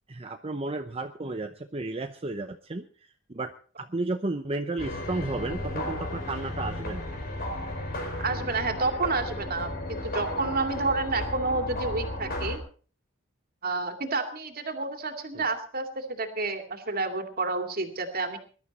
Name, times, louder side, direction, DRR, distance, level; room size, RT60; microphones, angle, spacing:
voice 1, 0.1-2.8 3.3-3.5 3.8-7.0 15.3-15.4, right 2 dB, 30° right, 7 dB, 0.8 m, -33 dB
sound 1, 4.8-12.6, left 1 dB, 50° left, 4.6 m, -34 dB
voice 2, 8.2-12.6 13.6-18.4, right 3 dB, 45° right, 6 dB, 2.4 m, -30 dB
21.0 x 12.0 x 4.2 m, 0.40 s
head